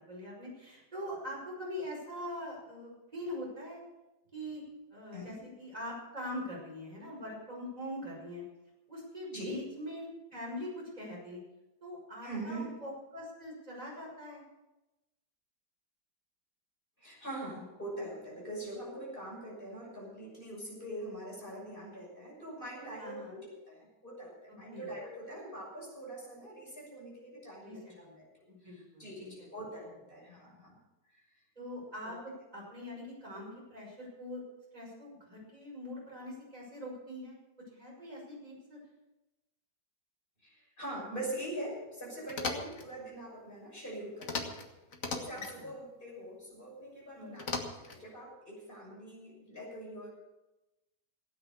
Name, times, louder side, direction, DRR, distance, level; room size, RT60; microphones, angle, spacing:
voice 1, 0.0-3.8 4.3-4.6 4.9-8.4 8.9-10.1 10.3-11.4 11.8-14.4 23.0-23.4 24.7-24.9 27.6-28.2 28.5-29.3 31.6-34.4 34.7-37.4 37.7-38.8 45.6-45.7 47.1-47.4, left 1 dB, 20° right, -3 dB, 5.8 m, -43 dB
voice 2, 12.2-12.7 17.0-28.3 28.6-30.8 31.1-31.2 32.0-32.2 40.4-44.5 45.0-50.1, right 1 dB, 30° left, -3 dB, 6.6 m, -43 dB
sound 1, 42.3-42.9 44.2-44.7 44.9-45.5 47.4-48.0, left 3 dB, 50° left, 1.9 m, -37 dB
17.0 x 9.5 x 6.8 m, 1.0 s
omnidirectional pair, 1.9 m